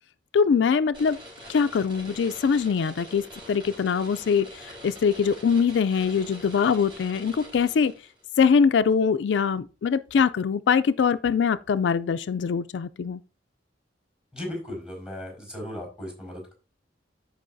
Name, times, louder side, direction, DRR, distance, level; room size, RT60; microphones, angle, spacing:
voice 1, 0.3-1.2 1.5-7.9 8.4-13.2, left 6 dB, 70° left, 0.3 m, -23 dB
sound 1, 0.9-8.2, equal, 25° right, 4.1 m, -45 dB
voice 2, 14.3-16.5, left 1 dB, 5° right, 4.7 m, -36 dB
14.0 x 5.3 x 2.6 m
head